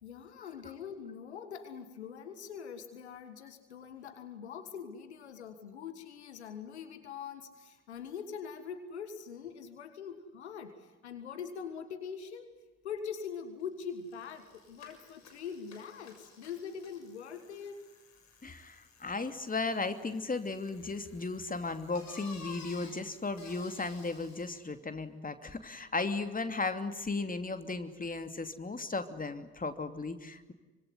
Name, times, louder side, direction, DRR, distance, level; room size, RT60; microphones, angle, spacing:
voice 1, 0.0-12.5 12.8-17.8, left 7 dB, 85° left, 9 dB, 1.6 m, -43 dB
Bicycle, 13.6-13.7 13.9-24.7, left 4 dB, 55° left, 6.9 m, -55 dB
voice 2, 18.4-30.5, left 3 dB, 25° left, 9 dB, 2.8 m, -36 dB
25.0 x 24.0 x 9.6 m, 1.2 s
figure-of-eight pair, 40°, 33 cm